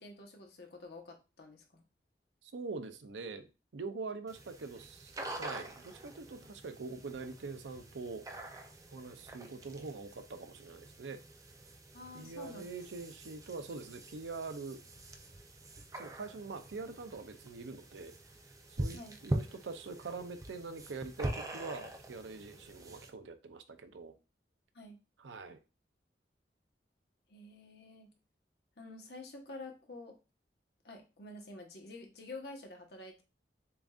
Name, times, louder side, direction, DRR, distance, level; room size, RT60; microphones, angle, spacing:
voice 1, 0.0-1.8 11.9-12.6 18.9-19.2 24.7-25.0 27.3-28.1 28.8-30.2 30.8-33.2, left 2 dB, 65° left, 2 dB, 1.0 m, -49 dB
voice 2, 2.4-3.5 3.7-8.2 8.9-11.2 12.1-14.8 16.0-18.1 18.8-24.1 25.2-25.6, right 4 dB, 90° right, 9 dB, 0.5 m, -44 dB
sound 1, 4.3-23.1, right 1 dB, 20° right, 0.4 m, -44 dB
6.9 x 2.6 x 2.4 m, 0.30 s
head